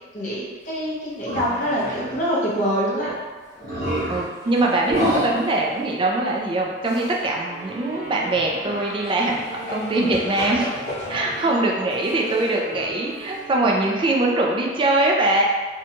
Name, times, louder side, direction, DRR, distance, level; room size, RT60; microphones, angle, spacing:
voice 1, 0.1-3.1 11.1-11.3, equal, 45° left, -6 dB, 0.7 m, -25 dB
sound 1, 1.3-2.3 2.6-2.7 3.0-3.2 3.6-5.6 6.8-7.2 7.6-7.7 8.0-11.4 11.9-12.9, equal, 55° right, 0.9 m, -30 dB
voice 2, 4.1-10.7 11.1-15.4, right 2 dB, 25° right, -1 dB, 0.3 m, -22 dB
sound 2, 7.5-14.0, right 1 dB, 80° right, 0.8 m, -38 dB
2.7 x 2.2 x 2.7 m, 1.4 s
head